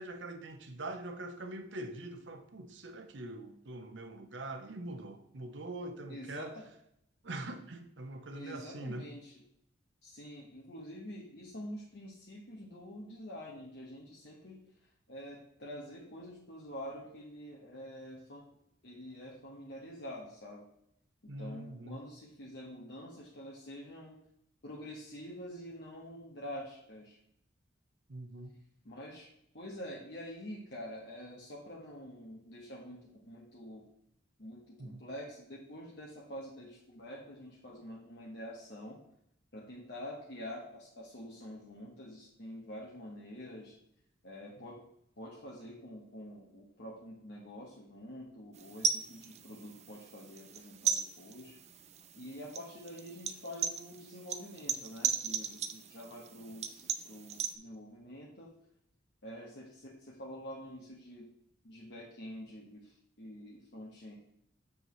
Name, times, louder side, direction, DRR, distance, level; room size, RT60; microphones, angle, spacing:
voice 1, 0.0-6.6 7.2-9.1 21.3-22.0 28.1-28.6 34.8-35.0 44.6-44.7, right 2 dB, 70° right, 0.8 m, -43 dB
voice 2, 6.1-6.6 8.3-9.3 10.0-14.6 15.1-18.5 18.8-20.6 21.2-24.1 24.6-27.2 28.8-29.3 29.5-33.9 34.4-39.0 39.5-43.8 44.2-44.8 45.2-51.5 52.1-58.5 59.2-61.3 61.6-64.2, equal, 65° left, 1.3 m, -47 dB
sound 1, 48.5-57.5, right 7 dB, 35° right, 0.4 m, -37 dB
7.2 x 6.4 x 3.2 m
head